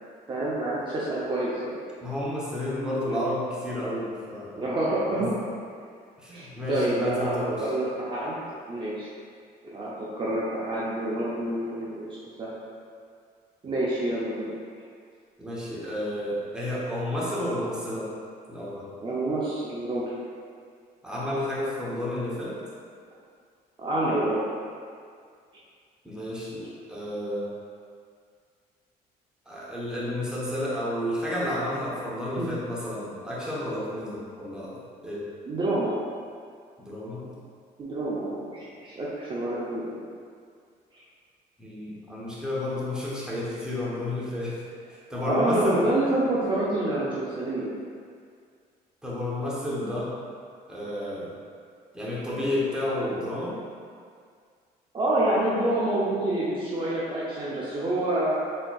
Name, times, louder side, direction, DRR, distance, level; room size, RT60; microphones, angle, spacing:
voice 1, 0.3-1.7 3.1-3.2 4.6-5.3 6.3-8.4 8.7-9.1 9.7-12.1 12.4-12.6 13.6-14.5 19.0-20.0 23.8-24.4 32.3-32.5 35.5-35.9 37.8-40.0 45.2-47.7 54.9-58.4, right 1 dB, 30° right, -8 dB, 0.7 m, -27 dB
voice 2, 2.0-4.6 5.1-5.3 6.2-7.7 15.4-18.1 18.5-18.9 21.0-22.6 26.0-27.5 29.5-34.8 35.0-35.3 36.8-37.3 41.6-44.6 44.9-45.8 49.0-50.2 50.7-51.3 51.9-53.6, left 1 dB, 5° right, -7 dB, 1.0 m, -31 dB
4.2 x 3.7 x 2.4 m, 2.1 s
cardioid pair, 110°, 17 cm